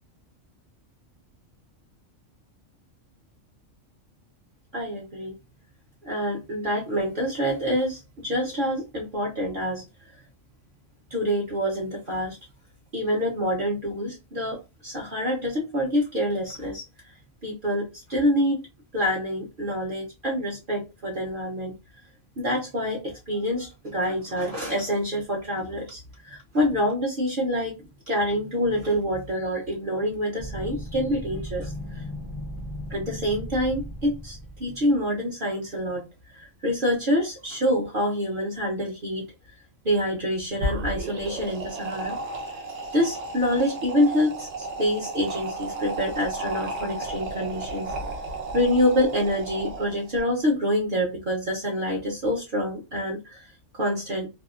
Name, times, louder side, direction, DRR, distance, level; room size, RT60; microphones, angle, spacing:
voice 1, 4.7-5.3 6.0-9.8 11.1-12.4 12.9-16.8 17.4-18.6 18.9-21.7 22.4-26.0 26.3-27.7 28.1-31.7 32.9-36.0 36.6-39.3 39.8-42.2 42.9-47.9 48.5-53.4 53.7-54.3, equal, 50° right, 0.9 m, -26 dB
sound 1, 30.4-34.9, equal, 35° left, 0.4 m, -37 dB
sound 2, 40.5-50.2, right 2 dB, 70° right, 1.1 m, -33 dB
2.8 x 2.3 x 2.3 m
omnidirectional pair, 1.3 m